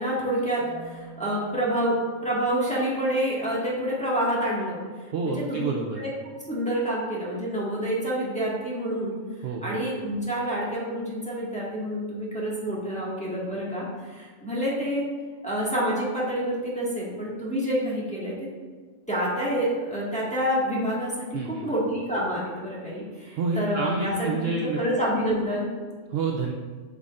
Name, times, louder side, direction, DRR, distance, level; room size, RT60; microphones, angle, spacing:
voice 1, 0.0-4.8 5.2-5.6 6.0-6.1 6.5-9.1 9.6-15.1 15.4-18.3 19.1-25.7, equal, 5° left, -7 dB, 1.7 m, -28 dB
Marimba xylophone, 0.6-3.6, right 5 dB, 45° right, 1.3 m, -48 dB
voice 2, 5.1-6.0 9.4-9.8 21.3-21.7 23.4-24.8 26.1-26.5, right 4 dB, 60° right, 1 dB, 0.7 m, -28 dB
8.2 x 5.4 x 2.5 m, 1.5 s
omnidirectional pair, 1.3 m